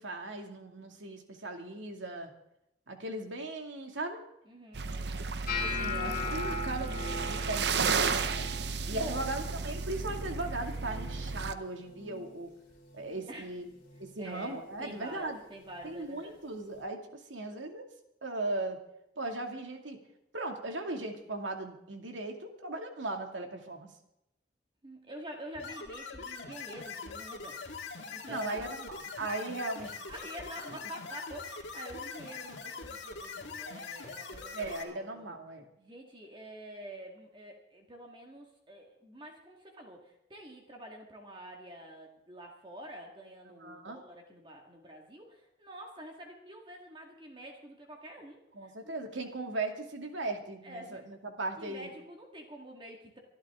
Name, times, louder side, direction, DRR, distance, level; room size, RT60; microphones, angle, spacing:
voice 1, 0.0-2.3 2.9-4.2 5.6-12.5 12.9-13.7 14.0-15.4 15.8-17.9 18.2-18.8 19.2-20.0 20.3-23.9 28.3-30.0 34.5-35.7 43.6-44.0 48.5-51.9, right 2 dB, 85° right, 4 dB, 2.3 m, -38 dB
voice 2, 4.5-5.4 8.9-9.3 13.3-13.5 14.2-16.4 24.8-28.7 30.1-35.4 35.8-49.0 50.6-51.1 51.6-53.2, right 1 dB, 25° right, 1 dB, 1.9 m, -47 dB
sound 1, 4.7-11.5, right 5 dB, 60° right, 0.8 m, -33 dB
sound 2, 5.5-11.6 11.8-12.3 12.7-13.2 13.9-14.1 15.8-15.9, left 3 dB, 50° left, 3.6 m, -39 dB
sound 3, 25.5-34.8, left 4 dB, 70° left, 2.1 m, -43 dB
24.5 x 12.0 x 3.7 m, 0.84 s
head